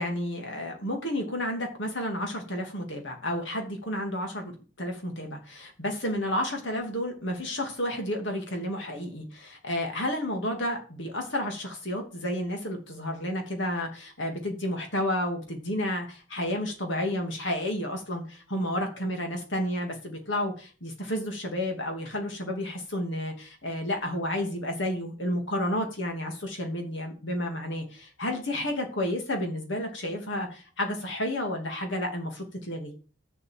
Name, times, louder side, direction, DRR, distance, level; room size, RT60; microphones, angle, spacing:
voice 1, 0.0-4.5 4.8-32.9, left 1 dB, 60° left, 3 dB, 2.8 m, -31 dB
7.4 x 6.5 x 7.8 m, 0.37 s
head